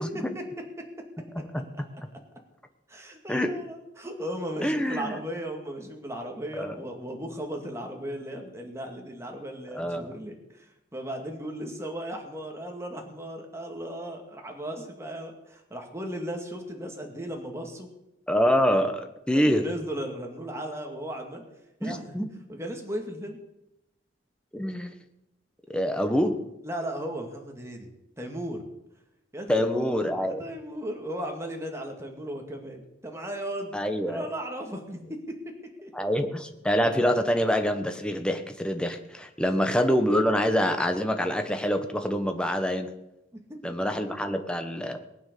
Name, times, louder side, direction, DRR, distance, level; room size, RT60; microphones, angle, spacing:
voice 1, 2.9-17.9 19.3-21.4 21.8-22.2 22.5-23.4 26.6-27.9 28.2-28.6 29.3-33.7 34.1-35.0 35.8-36.1 43.3-43.4, right 1 dB, 15° right, 2 dB, 2.2 m, -36 dB
voice 2, 4.6-5.1 6.6-6.7 9.7-10.1 18.3-19.7 21.8-22.3 24.5-25.0 25.7-26.4 29.5-30.4 33.7-34.3 35.9-42.9 43.6-45.0, equal, 5° left, 6 dB, 1.2 m, -26 dB
19.5 x 9.1 x 7.0 m, 0.90 s
head